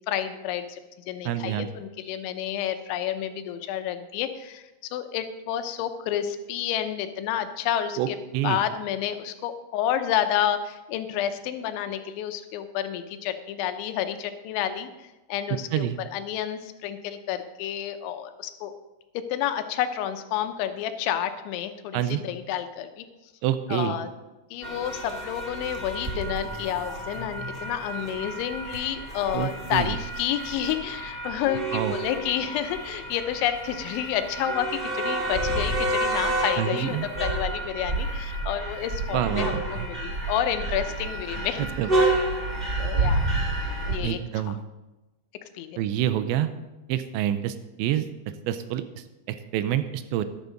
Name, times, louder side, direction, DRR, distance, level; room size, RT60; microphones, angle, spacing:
voice 1, 0.1-0.8 1.1-8.2 8.4-14.9 15.3-18.7 19.1-23.1 23.7-24.1 24.5-41.7 42.8-43.3 43.9-44.6 45.5-45.8, left 10 dB, 85° left, 9 dB, 3.2 m, -30 dB
voice 2, 1.3-1.7 8.0-8.1 8.3-8.6 15.7-16.0 21.9-22.2 23.4-24.0 29.3-30.0 31.7-31.9 36.6-37.1 39.1-39.9 41.6-41.9 44.0-44.6 45.8-46.5 46.9-48.1 48.5-48.8 49.5-50.3, right 11 dB, 85° right, 11 dB, 2.9 m, -27 dB
sound 1, 24.6-44.0, right 2 dB, 55° right, 0.6 m, -29 dB
12.5 x 11.5 x 3.9 m, 1.1 s
omnidirectional pair, 5.3 m